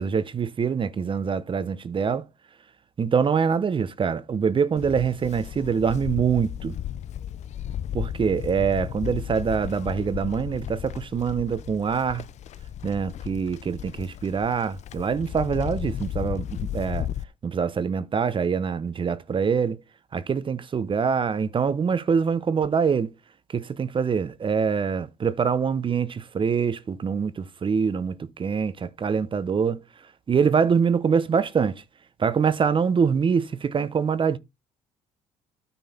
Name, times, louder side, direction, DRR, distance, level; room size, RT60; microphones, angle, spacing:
voice 1, 0.0-2.2 3.0-6.7 7.9-12.3 12.8-17.1 17.4-19.8 20.1-23.1 23.5-29.8 30.3-31.8 32.2-34.4, right 6 dB, 35° right, 0.9 m, -24 dB
Livestock farm animals working animals, 4.8-17.2, left 10 dB, 55° left, 0.6 m, -34 dB
9.5 x 4.1 x 6.8 m
supercardioid pair, 70°, 14 cm